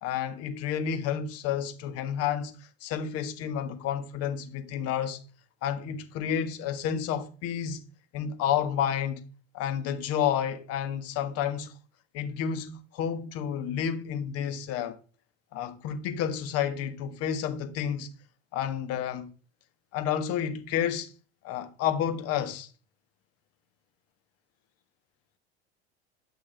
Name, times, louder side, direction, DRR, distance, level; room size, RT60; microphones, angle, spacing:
voice 1, 0.0-2.5 2.8-5.2 5.6-7.8 8.1-9.3 9.5-11.7 12.1-15.0 15.5-18.1 18.5-19.3 19.9-21.1 21.4-22.7, left 9 dB, 50° left, 1.6 m, -30 dB
12.0 x 6.1 x 3.4 m
hypercardioid pair, 80°, 32 cm